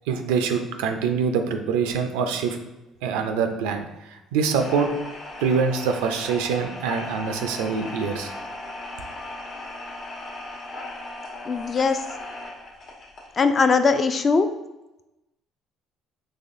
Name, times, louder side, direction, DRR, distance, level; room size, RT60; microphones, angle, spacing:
voice 1, 0.1-2.6 3.0-3.8 4.3-4.9 5.4-8.3, right 6 dB, 90° right, 6 dB, 0.4 m, -24 dB
sound 1, 4.4-13.4, left 2 dB, 60° left, 1.1 m, -37 dB
voice 2, 11.5-12.0 13.4-14.5, left 4 dB, 40° left, 9 dB, 0.3 m, -20 dB
4.1 x 3.1 x 2.5 m, 0.99 s
supercardioid pair, 80°, 0 cm